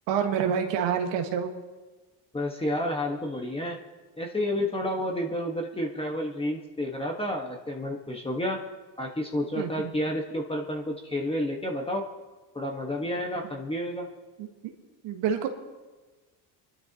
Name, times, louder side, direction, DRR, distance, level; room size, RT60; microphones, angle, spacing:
voice 1, 0.1-1.5 9.6-9.9 13.4-13.5 14.4-14.5 15.0-15.5, right 7 dB, 80° right, 4 dB, 1.8 m, -27 dB
voice 2, 2.3-3.8 4.2-8.6 9.0-12.0 12.5-14.1, left 1 dB, 15° left, 0 dB, 1.5 m, -30 dB
25.5 x 12.0 x 3.0 m, 1.3 s
cardioid pair, 110°, 43 cm